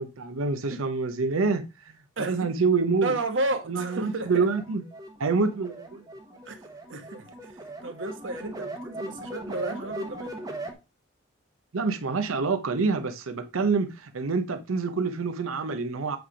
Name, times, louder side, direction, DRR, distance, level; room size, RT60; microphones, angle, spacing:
voice 1, 0.0-3.1 3.7-4.8 5.2-6.0 11.7-16.2, right 4 dB, 85° right, 0.7 m, -27 dB
voice 2, 2.2-2.6 3.0-4.5 6.4-10.3, right 2 dB, 65° right, 1.1 m, -33 dB
sound 1, 3.8-10.7, right 1 dB, 20° right, 1.0 m, -39 dB
7.9 x 3.4 x 4.9 m
head